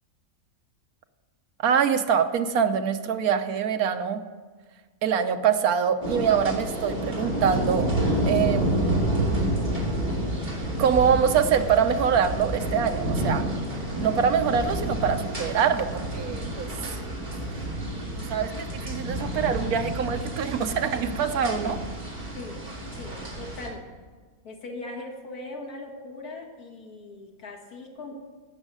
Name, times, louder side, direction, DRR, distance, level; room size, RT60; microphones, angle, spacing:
voice 1, 1.6-4.2 5.0-7.9 8.3-9.1 10.8-13.5 14.0-17.0 18.2-21.8, right 7 dB, 80° right, 8 dB, 1.3 m, -24 dB
sound 1, 6.0-23.7, right 1 dB, 30° right, 2.8 m, -29 dB
voice 2, 22.3-22.7 22.9-23.9 24.4-28.2, left 2 dB, 90° left, 1 dB, 2.4 m, -40 dB
16.5 x 6.4 x 6.2 m, 1.5 s
omnidirectional pair, 1.5 m